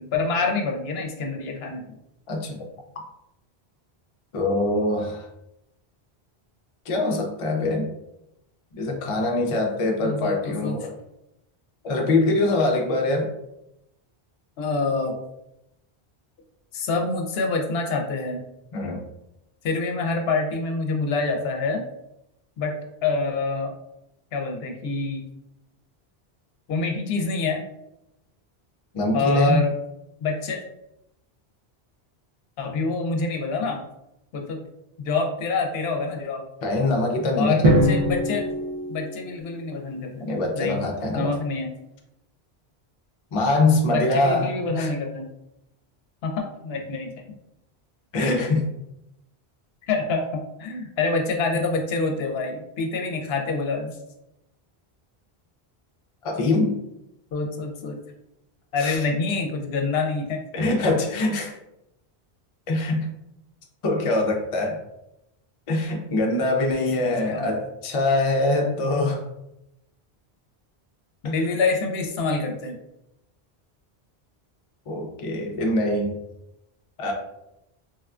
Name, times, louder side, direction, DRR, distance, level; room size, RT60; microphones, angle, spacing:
voice 1, 0.0-1.9 10.0-10.8 14.6-15.2 16.7-18.4 19.6-21.8 22.6-23.7 24.3-25.2 26.7-27.6 29.1-29.7 30.2-30.6 32.6-33.8 34.3-34.6 35.0-36.4 37.4-38.5 38.9-40.3 40.5-40.8 41.1-41.7 43.9-45.2 46.2-47.1 49.9-53.9 57.3-58.0 58.7-60.4 61.1-61.2 67.0-67.5 71.2-72.8, left 3 dB, 75° left, 2 dB, 0.8 m, -26 dB
voice 2, 2.3-2.6 4.3-5.3 6.9-7.9 8.8-10.9 11.8-13.3 18.7-19.0 28.9-29.6 36.6-37.7 40.2-41.3 43.3-44.9 48.1-48.7 56.2-56.8 58.8-59.0 60.5-61.5 62.7-63.1 63.8-64.8 65.7-69.2 71.2-71.4 74.9-76.1 77.0-77.1, left 2 dB, 45° left, 1 dB, 0.4 m, -23 dB
Drum, 37.6-39.8, equal, 45° right, 0.5 m, -22 dB
3.5 x 2.2 x 2.4 m, 0.87 s
omnidirectional pair, 1.1 m